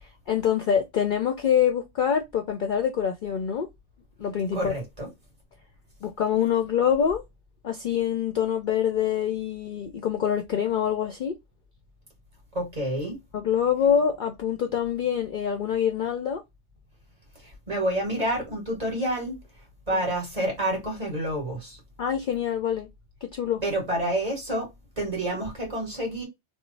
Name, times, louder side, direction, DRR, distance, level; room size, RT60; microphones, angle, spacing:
voice 1, 0.0-3.7 4.2-4.7 6.0-7.2 7.6-11.3 13.3-16.4 19.9-20.0 22.0-22.9 23.2-23.6, left 8 dB, 60° left, 0.5 m, -25 dB
voice 2, 4.5-5.1 12.5-13.2 17.7-19.4 19.9-21.8 23.6-24.7 25.0-26.2, right 1 dB, 35° right, 1.5 m, -28 dB
3.0 x 2.0 x 3.8 m
omnidirectional pair, 1.2 m